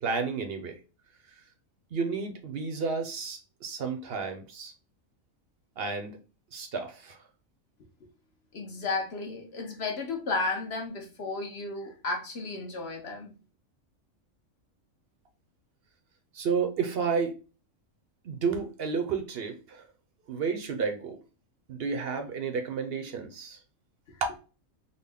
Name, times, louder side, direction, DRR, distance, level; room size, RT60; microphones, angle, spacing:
voice 1, 0.0-0.8 1.9-4.7 5.8-6.2 6.5-7.2 16.3-17.4 18.2-19.8 20.3-21.2 21.7-23.6, right 5 dB, 55° right, 0.8 m, -31 dB
voice 2, 8.5-13.3 24.1-24.2, left 3 dB, 55° left, 1.2 m, -33 dB
3.9 x 2.1 x 3.4 m
omnidirectional pair, 1.4 m